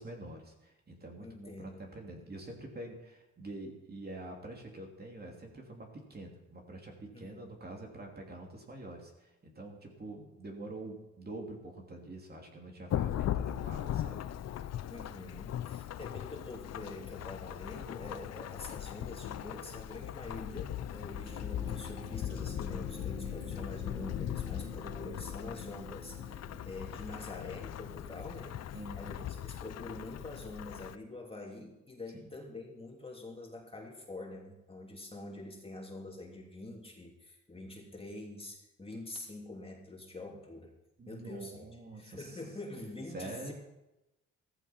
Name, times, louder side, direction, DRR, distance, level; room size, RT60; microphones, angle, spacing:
voice 1, 0.0-14.2 26.5-26.7 28.7-29.2 32.1-32.3 40.3-40.4 41.0-42.4 43.1-43.5, right 2 dB, 30° right, 1 dB, 2.9 m, -46 dB
voice 2, 1.2-1.8 7.1-7.5 14.9-28.6 29.0-40.7 41.1-41.6 41.9-43.5, left 2 dB, 20° left, 0 dB, 2.9 m, -46 dB
Thunderstorm / Rain, 12.9-31.0, left 11 dB, 60° left, 0.7 m, -39 dB
sound 1, 21.1-27.7, right 3 dB, 10° right, 2.4 m, -50 dB
14.5 x 14.5 x 4.5 m, 0.94 s
cardioid pair, 90°, 30 cm